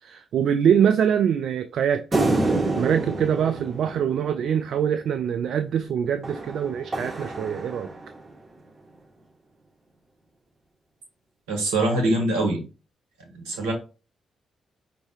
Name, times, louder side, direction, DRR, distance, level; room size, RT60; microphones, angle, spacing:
voice 1, 0.0-2.1 2.8-7.9, right 8 dB, 65° right, 0.3 m, -24 dB
sound 1, 2.1-4.8 6.2-8.3, right 2 dB, 35° right, 2.8 m, -28 dB
voice 2, 11.5-12.6 13.4-13.7, right 2 dB, 85° right, 1.4 m, -23 dB
5.3 x 3.1 x 3.1 m
hypercardioid pair, 40°, 0 cm